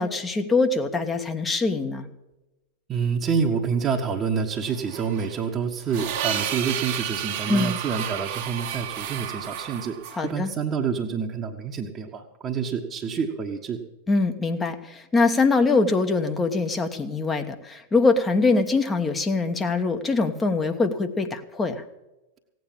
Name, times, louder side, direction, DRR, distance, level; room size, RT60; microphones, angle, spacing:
voice 1, 0.0-2.1 7.5-7.8 10.1-10.5 14.1-21.8, left 3 dB, 15° left, 6 dB, 1.2 m, -23 dB
voice 2, 2.9-10.0 10.2-13.8, right 6 dB, 25° right, 0 dB, 1.3 m, -27 dB
sound 1, 4.6-10.3, right 10 dB, 45° right, 1.4 m, -32 dB
16.5 x 9.3 x 7.3 m, 0.98 s
figure-of-eight pair, 90°, 0 cm